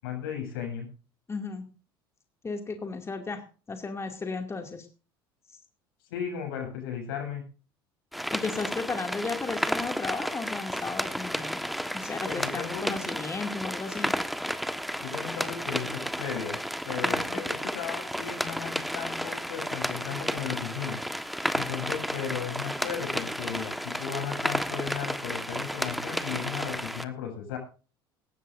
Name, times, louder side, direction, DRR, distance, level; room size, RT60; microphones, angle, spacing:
voice 1, 0.0-0.9 6.1-7.4 12.3-13.0 15.0-16.6 16.9-21.0 21.5-27.6, left 8 dB, 75° left, 3 dB, 7.7 m, -35 dB
voice 2, 1.3-1.6 2.4-4.9 5.5-5.6 8.3-11.6 11.9-14.1 17.0-17.4, left 4 dB, 20° left, 5 dB, 2.4 m, -34 dB
sound 1, 8.1-27.0, equal, ahead, 1.4 m, -32 dB
19.0 x 17.0 x 2.6 m, 0.36 s
hypercardioid pair, 70°, 12 cm